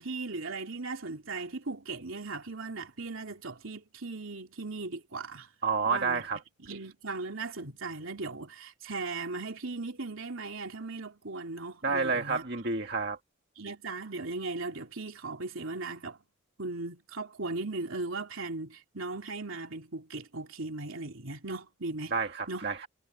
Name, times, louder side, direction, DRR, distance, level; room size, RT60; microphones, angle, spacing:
voice 1, 0.0-5.5 5.9-6.2 6.6-12.4 13.6-16.2 16.6-22.1 22.5-22.7, right 3 dB, 80° right, 2.9 m, -38 dB
voice 2, 5.6-6.4 11.8-13.2 22.1-22.9, right 4 dB, 55° right, 1.8 m, -29 dB
head